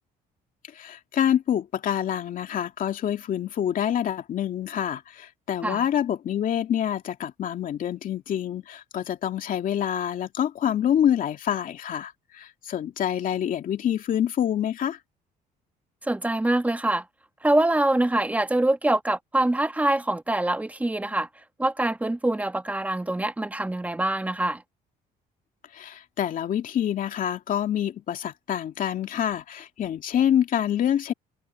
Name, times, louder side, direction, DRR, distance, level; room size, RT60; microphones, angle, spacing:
voice 1, 0.7-15.0 25.7-31.1, left 10 dB, 55° left, 2.6 m, -26 dB
voice 2, 16.0-17.0 17.4-21.3 21.6-24.6, right 1 dB, 10° right, 1.4 m, -24 dB
cardioid pair, 110°, 17 cm